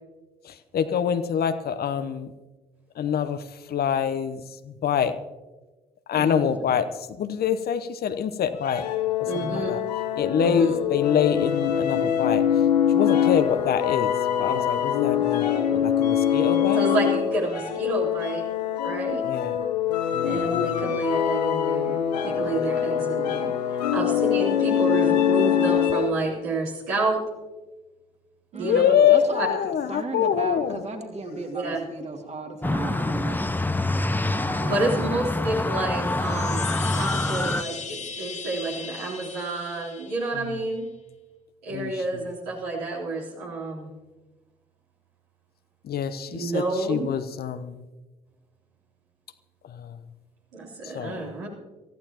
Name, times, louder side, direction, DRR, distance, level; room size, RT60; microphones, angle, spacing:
voice 1, 0.7-2.3 3.0-3.4 3.7-4.4 4.8-5.1 6.1-6.9 7.2-8.8 9.3-9.8 10.2-12.4 12.9-14.1 14.4-16.8 19.2-19.5 20.1-20.8 28.6-30.8 40.4-40.5 41.7-41.9 45.9-46.6 46.9-47.8 49.8-49.9 50.9-51.2, left 8 dB, 50° left, 11 dB, 0.9 m, -25 dB
voice 2, 6.1-6.6 9.2-9.7 10.3-10.8 16.7-18.5 18.8-19.2 20.2-22.0 22.2-23.5 23.9-27.2 28.5-28.8 29.4-29.5 31.5-31.8 34.6-40.9 41.6-43.9 46.3-47.1 50.5-51.5, right 2 dB, 75° right, -5 dB, 3.7 m, -29 dB
sound 1, 8.6-26.3, left 9 dB, 85° left, 0.8 m, -24 dB
voice 3, 28.5-33.7 34.0-35.2, right 3 dB, 35° right, 3 dB, 2.6 m, -36 dB
sound 2, 32.6-37.6, left 2 dB, 10° left, 0.7 m, -26 dB
Chime, 36.0-40.6, left 6 dB, 35° left, 1.4 m, -37 dB
24.0 x 14.5 x 3.0 m, 1.2 s
figure-of-eight pair, 45°, 21 cm